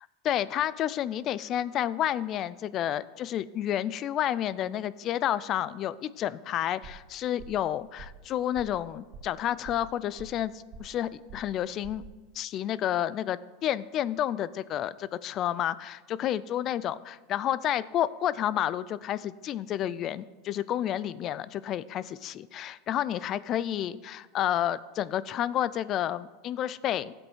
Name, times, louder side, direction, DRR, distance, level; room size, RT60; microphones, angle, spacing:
voice 1, 0.2-12.0 12.3-27.1, left 11 dB, 40° left, 18 dB, 0.4 m, -30 dB
sound 1, 6.8-7.1 7.4-7.7 8.0-8.3 8.5-8.8 9.1-9.4 9.6-10.5 10.7-11.0 11.3-11.6 11.8-12.1, right 4 dB, 50° right, 3.3 m, -47 dB
13.0 x 7.9 x 4.6 m, 1.3 s
supercardioid pair, 115°, 0 cm